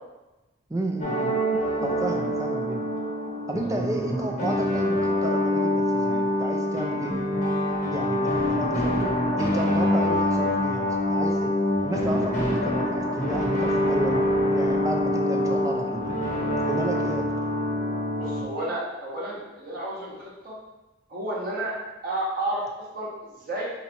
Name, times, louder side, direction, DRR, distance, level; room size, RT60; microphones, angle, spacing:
voice 1, 0.7-1.4 1.8-2.9 3.5-7.4 7.8-8.9 9.4-11.5 11.8-16.0 16.7-17.3, right 2 dB, 15° right, 1 dB, 0.4 m, -32 dB
sound 1, 1.0-18.4, left 1 dB, 35° left, 0.9 m, -25 dB
voice 2, 18.1-20.5 21.1-21.7 22.0-23.7, right 1 dB, 45° right, -6 dB, 1.2 m, -32 dB
3.9 x 2.9 x 4.6 m, 1.1 s
head